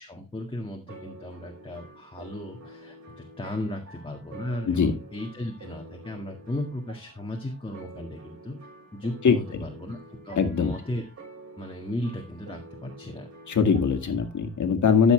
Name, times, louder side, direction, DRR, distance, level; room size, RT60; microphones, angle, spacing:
voice 1, 0.0-8.6 8.9-10.0 10.2-11.0 11.6-13.3, left 1 dB, 20° left, 2 dB, 1.8 m, -35 dB
sound 1, 0.9-14.6, right 2 dB, 55° right, 6.2 m, -48 dB
voice 2, 10.4-10.7 13.5-15.1, left 6 dB, 80° left, 7 dB, 2.0 m, -21 dB
13.5 x 7.0 x 3.3 m, 0.27 s
wide cardioid pair, 155°, 29 cm